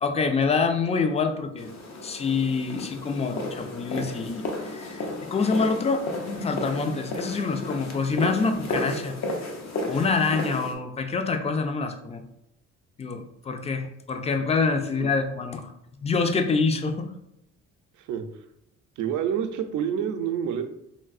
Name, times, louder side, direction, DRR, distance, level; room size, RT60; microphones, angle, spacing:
voice 1, 0.0-1.7 2.0-5.1 5.3-6.1 6.4-9.1 9.9-12.2 13.0-15.7 16.0-17.1, left 4 dB, 20° left, 6 dB, 0.4 m, -26 dB
sound 1, 1.6-10.8, left 2 dB, 60° left, 0.7 m, -33 dB
voice 2, 19.0-20.6, right 8 dB, 75° right, 7 dB, 0.5 m, -28 dB
3.2 x 2.6 x 2.4 m, 0.82 s
cardioid pair, 90°, 30 cm